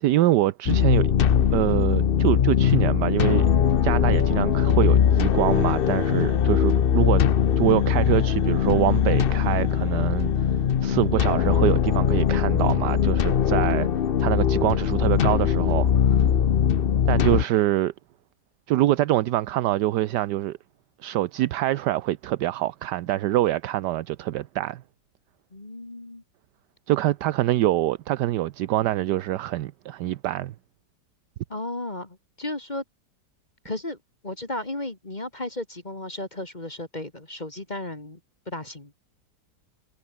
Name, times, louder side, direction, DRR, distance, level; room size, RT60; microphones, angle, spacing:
voice 1, 0.0-1.1 1.5-3.5 3.8-7.2 7.6-13.9 14.2-16.2 17.1-17.9 18.7-20.6 21.0-24.8 26.9-30.5, right 14 dB, 75° right, 1.3 m, -25 dB
sound 1, 0.7-17.4, left 8 dB, 50° left, 0.6 m, -21 dB
voice 2, 25.5-26.2 31.5-32.8 33.6-34.0 34.2-38.2 38.5-38.9, left 1 dB, 25° left, 2.5 m, -34 dB
omnidirectional pair, 1.9 m